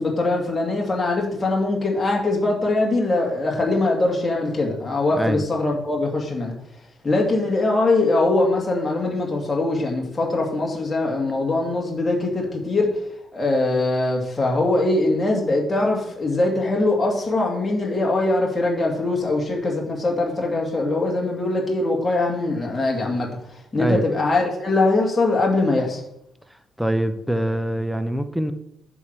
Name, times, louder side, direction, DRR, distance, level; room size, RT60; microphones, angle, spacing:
voice 1, 0.0-6.5 7.0-13.0 13.3-23.3 23.7-26.0, left 2 dB, 20° left, 2.3 m, -22 dB
voice 2, 26.5-28.5, right 1 dB, ahead, 0.7 m, -24 dB
8.6 x 4.8 x 6.6 m
cardioid pair, 90°, 0 cm